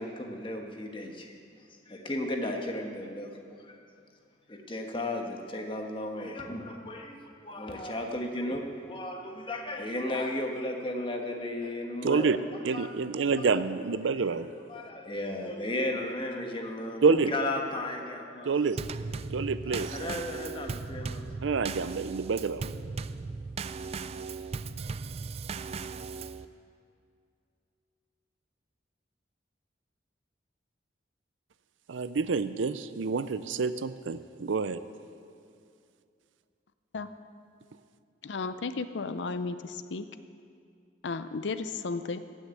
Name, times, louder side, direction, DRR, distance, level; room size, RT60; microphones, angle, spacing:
voice 1, 0.0-1.4 1.9-3.3 3.6-3.8 4.5-12.3 12.7-12.9 14.7-18.5 19.7-21.2, left 1 dB, 30° left, 2 dB, 1.3 m, -34 dB
voice 2, 12.0-12.4 12.6-14.5 17.0-17.3 18.4-18.8 19.3-20.0 21.4-22.7 31.9-34.8, right 4 dB, 90° right, 13 dB, 0.5 m, -28 dB
Drum kit / Snare drum / Bass drum, 18.8-26.5, right 4 dB, 35° right, 0.3 m, -37 dB
voice 3, 38.2-40.0 41.0-42.2, left 4 dB, 70° left, 12 dB, 0.5 m, -34 dB
15.5 x 6.4 x 8.4 m, 2.4 s
head